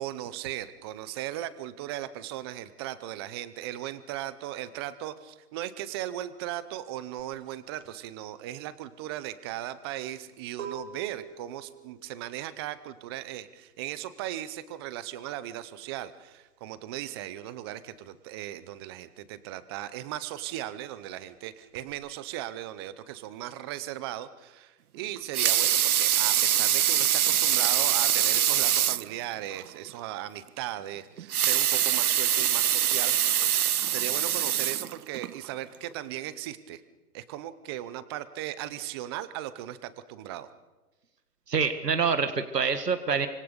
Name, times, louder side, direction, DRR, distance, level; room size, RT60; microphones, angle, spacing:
voice 1, 0.0-33.4 33.9-36.8 37.1-40.5, right 13 dB, 15° right, 15 dB, 0.7 m, -37 dB
sound 1, 7.2-17.4 17.7-21.9, right 6 dB, 50° right, 4.1 m, -47 dB
Water tap faucet / Sink (filling or washing) / Liquid, 25.1-29.1 29.6-29.7 30.0-30.1 31.2-35.3 35.9-36.0, right 11 dB, 65° right, 0.7 m, -24 dB
voice 2, 41.5-43.3, right 5 dB, 85° right, 9 dB, 1.8 m, -26 dB
25.5 x 23.5 x 6.7 m, 1.1 s
hypercardioid pair, 145°, 47 cm